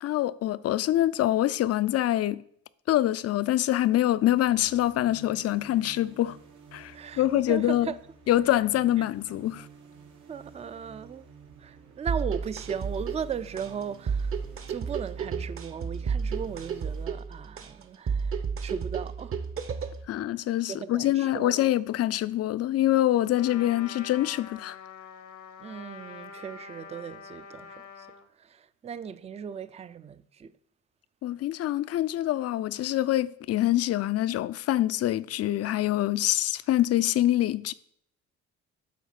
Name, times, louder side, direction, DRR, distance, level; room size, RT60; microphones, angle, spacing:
voice 1, 0.0-2.4 2.9-6.4 6.7-7.9 8.3-9.7 20.1-24.8 31.2-37.7, left 14 dB, 55° left, 0.4 m, -25 dB
sound 1, 4.2-17.1, right 5 dB, 80° right, 1.3 m, -51 dB
voice 2, 6.9-8.0 10.3-11.3 11.6-14.4 14.7-19.4 20.7-21.6 25.6-28.1 28.4-30.5, right 7 dB, 20° right, 0.4 m, -37 dB
sound 2, 12.1-20.1, right 6 dB, 45° right, 0.9 m, -32 dB
Trumpet, 23.4-28.3, left 6 dB, 75° left, 0.9 m, -45 dB
7.2 x 4.0 x 5.8 m
cardioid pair, 90°, 30 cm